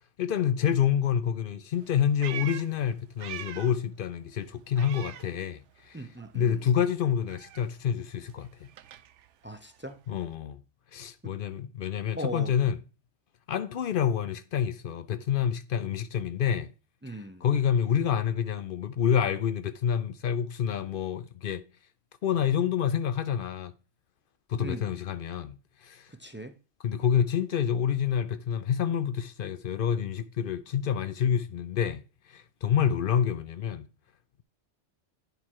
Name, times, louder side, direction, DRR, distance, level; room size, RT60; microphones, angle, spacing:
voice 1, 0.2-5.6 5.9-6.0 6.3-8.5 10.1-10.6 10.9-12.8 13.5-16.7 17.4-21.6 22.2-23.7 24.5-26.1 26.8-32.0 32.3-33.9, left 8 dB, 60° left, 0.6 m, -28 dB
Meow, 1.7-3.9 4.2-5.9 6.2-10.3, right 11 dB, 80° right, 0.9 m, -44 dB
voice 2, 5.9-6.7 9.4-10.0 11.2-11.3 12.2-12.5 17.0-17.4 24.6-24.9 26.1-26.5, equal, 15° right, 0.5 m, -39 dB
9.4 x 4.3 x 4.6 m
omnidirectional pair, 1.2 m